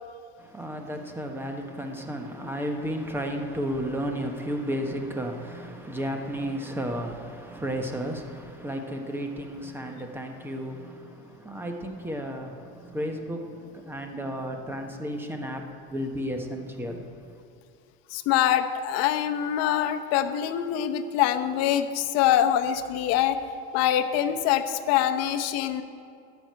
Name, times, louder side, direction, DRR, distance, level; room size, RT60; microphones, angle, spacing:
voice 1, 0.4-17.1, equal, 5° right, 4 dB, 1.2 m, -33 dB
voice 2, 18.1-23.4 23.7-25.8, left 11 dB, 60° left, 9 dB, 0.9 m, -24 dB
12.0 x 6.4 x 9.4 m, 2.3 s
supercardioid pair, 135°, 29 cm